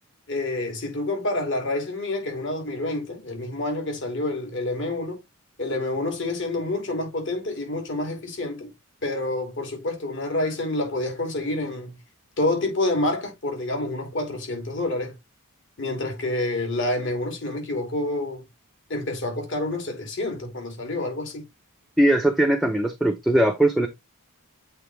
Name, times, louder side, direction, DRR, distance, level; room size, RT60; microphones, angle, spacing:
voice 1, 0.3-5.2 5.6-8.7 9.0-11.9 12.4-15.1 15.8-18.4 18.9-21.4, left 2 dB, 55° left, 2.8 m, -28 dB
voice 2, 22.0-23.9, right 1 dB, ahead, 0.6 m, -20 dB
7.9 x 4.0 x 3.3 m
head